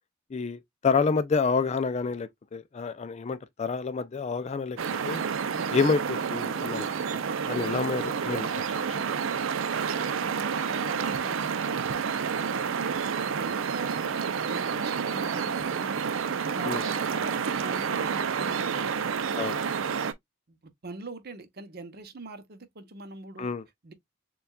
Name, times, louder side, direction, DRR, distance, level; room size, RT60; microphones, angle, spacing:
voice 1, 0.3-4.8 5.0-5.2 5.7-7.2 7.5-8.8 16.6-16.8 19.4-19.6 23.4-23.6, left 5 dB, 35° left, 0.4 m, -28 dB
sound 1, 4.8-20.1, right 6 dB, 85° right, 0.5 m, -29 dB
voice 2, 5.5-5.8 7.5-7.8 9.5-11.6 12.4-13.0 13.2-16.0 16.5-18.9 20.5-20.6 20.8-23.5 23.8-23.9, right 3 dB, 55° right, 0.8 m, -42 dB
6.8 x 2.3 x 2.3 m
head